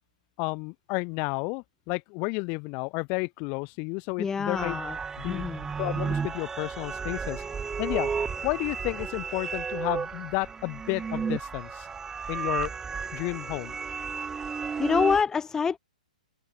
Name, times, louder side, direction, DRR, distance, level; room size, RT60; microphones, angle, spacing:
voice 1, 0.4-4.8 5.2-5.4 5.8-7.4 7.8-8.1 8.4-11.9 12.3-12.7 13.1-13.8, left 33 dB, 35° left, 3.8 m, -31 dB
voice 2, 4.2-5.0 5.2-5.7 14.8-15.8, left 6 dB, 10° left, 1.4 m, -26 dB
sound 1, 4.6-15.2, right 5 dB, 10° right, 1.0 m, -33 dB
open air
hypercardioid pair, 125°, 4 cm